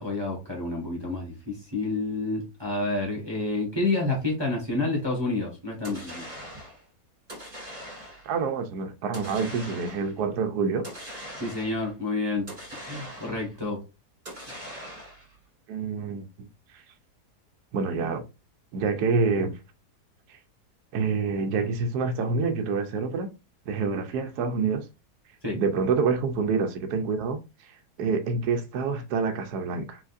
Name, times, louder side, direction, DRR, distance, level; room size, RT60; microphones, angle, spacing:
voice 1, 0.0-6.2 11.3-12.5 12.8-13.8 14.5-14.6 25.4-25.6, left 2 dB, 15° right, 1.5 m, -29 dB
sound 1, 5.8-6.8 7.3-8.3 9.1-10.2 10.8-11.9 12.5-13.6 14.3-15.3, equal, 40° right, 2.6 m, -41 dB
voice 2, 8.2-10.9 15.7-16.5 16.7-16.8 17.7-18.2 18.7-19.6 20.3-20.4 20.9-23.3 23.7-24.9 25.5-30.0, right 4 dB, 85° right, 1.2 m, -27 dB
4.9 x 3.8 x 2.5 m
omnidirectional pair, 1.7 m